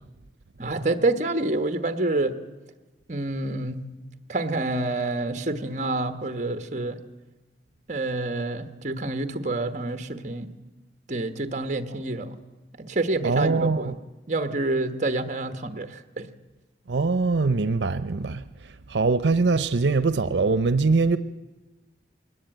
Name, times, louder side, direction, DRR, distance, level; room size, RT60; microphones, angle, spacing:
voice 1, 0.6-2.4 3.1-3.9 4.3-7.0 7.9-10.5 11.1-12.3 12.8-13.9 14.3-16.3, right 2 dB, 40° right, 1.2 m, -27 dB
voice 2, 13.2-13.9 16.9-18.4 18.9-21.2, right 3 dB, 85° right, 0.7 m, -22 dB
21.5 x 19.0 x 9.0 m
head